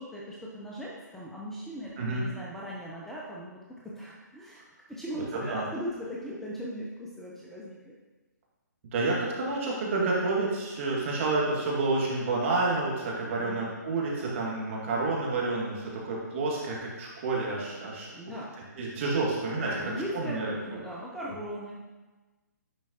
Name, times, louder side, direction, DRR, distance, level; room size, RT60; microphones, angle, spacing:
voice 1, 0.0-4.6 4.9-7.9 13.3-13.8 18.1-18.6 19.6-21.8, equal, 5° left, -6 dB, 0.7 m, -39 dB
voice 2, 5.3-5.7 8.9-18.1 18.8-20.8, right 3 dB, 40° right, -4 dB, 2.0 m, -29 dB
10.0 x 4.5 x 2.9 m, 1.2 s
figure-of-eight pair, 135°, 10 cm